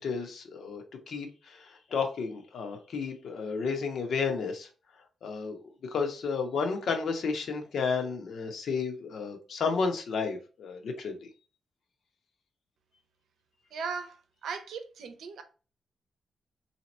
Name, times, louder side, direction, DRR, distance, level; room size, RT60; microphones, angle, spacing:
voice 1, 0.0-4.7 5.2-5.6 5.9-11.3, left 5 dB, 65° left, 0.8 m, -32 dB
voice 2, 13.7-15.4, right 5 dB, 85° right, 0.7 m, -38 dB
3.3 x 2.9 x 4.1 m
wide cardioid pair, 170°, 0 cm